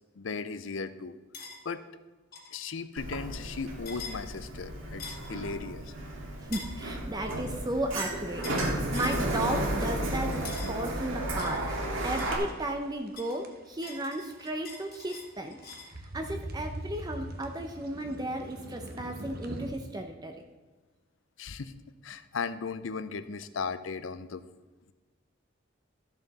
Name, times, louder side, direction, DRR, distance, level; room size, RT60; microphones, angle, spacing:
voice 1, 0.2-1.1 1.6-1.8 2.5-5.9 21.4-21.7 22.0-24.4, left 5 dB, 70° left, 13 dB, 0.6 m, -36 dB
sound 1, 1.3-1.6 2.3-2.5 3.8-4.2 5.0-5.3 6.5-6.8 8.4-8.7 8.9-9.2 10.4-10.8 11.4-12.8 13.2-15.9, left 4 dB, 50° left, 1.8 m, -44 dB
Sliding door, 3.0-12.4, right 1 dB, 80° right, 2.1 m, -33 dB
voice 2, 6.4-11.6 12.0-15.6 15.9-20.4, right 1 dB, 20° right, 4 dB, 0.7 m, -34 dB
sound 2, 9.9-19.7, right 1 dB, 50° right, 1.1 m, -43 dB
13.0 x 7.0 x 4.1 m, 1.3 s
head